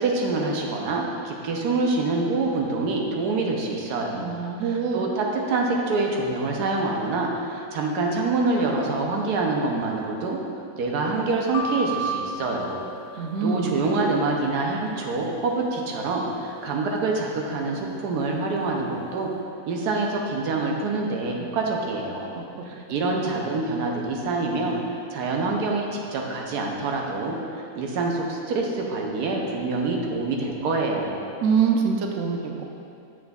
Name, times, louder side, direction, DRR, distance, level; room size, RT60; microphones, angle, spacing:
voice 1, 0.0-4.3 4.6-10.4 10.7-12.8 13.1-19.3 19.7-22.3 22.7-27.4 27.8-31.2, right 3 dB, 85° right, 0 dB, 1.3 m, -26 dB
voice 2, 4.1-5.0 13.2-13.7 22.3-22.5 31.4-32.6, right 6 dB, 65° right, 2 dB, 0.7 m, -24 dB
sound 1, 11.5-13.7, right 1 dB, 80° left, 1.4 m, -32 dB
7.3 x 6.0 x 2.4 m, 2.6 s
omnidirectional pair, 1.7 m